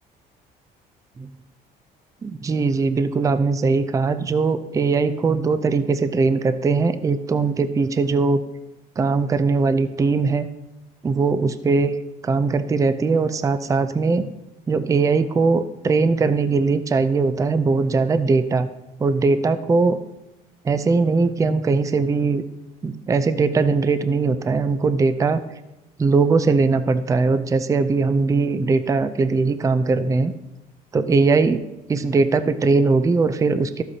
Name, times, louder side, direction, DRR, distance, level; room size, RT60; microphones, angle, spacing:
voice 1, 2.2-8.4 9.0-10.5 11.0-12.0 12.2-14.3 14.7-18.7 19.0-20.0 20.6-22.4 22.8-25.4 26.0-30.3 30.9-31.6 31.9-33.8, right 4 dB, 20° right, 11 dB, 0.4 m, -20 dB
12.0 x 8.0 x 2.8 m, 0.94 s
cardioid pair, 110°, 17 cm